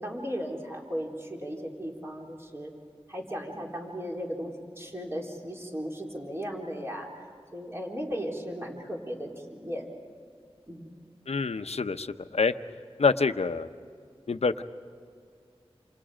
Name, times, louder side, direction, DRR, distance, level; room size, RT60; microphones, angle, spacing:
voice 1, 0.0-2.7 3.1-7.1 7.5-9.9 10.7-10.9, equal, 25° right, -2 dB, 4.0 m, -36 dB
voice 2, 11.3-12.5 13.0-13.7 14.3-14.6, left 4 dB, 85° left, 9 dB, 0.8 m, -26 dB
28.5 x 28.0 x 5.1 m, 2.3 s
wide cardioid pair, 60°, 10 cm